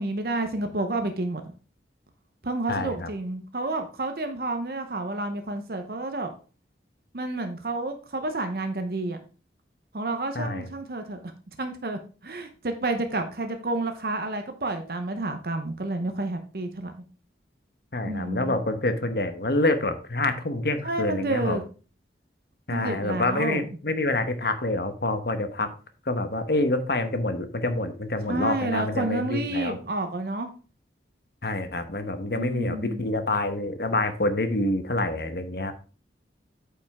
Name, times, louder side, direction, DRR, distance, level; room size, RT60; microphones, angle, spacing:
voice 1, 0.0-1.4 2.4-6.3 7.1-9.2 9.9-11.2 11.6-16.9 18.0-18.6 20.8-21.6 22.7-23.6 28.2-30.5 32.3-33.1, right 2 dB, 55° right, 6 dB, 0.8 m, -30 dB
voice 2, 2.7-3.1 10.3-10.7 17.9-21.6 22.7-25.7 26.1-29.8 31.4-35.7, left 2 dB, 60° left, 8 dB, 1.1 m, -27 dB
8.9 x 5.4 x 3.5 m, 0.36 s
head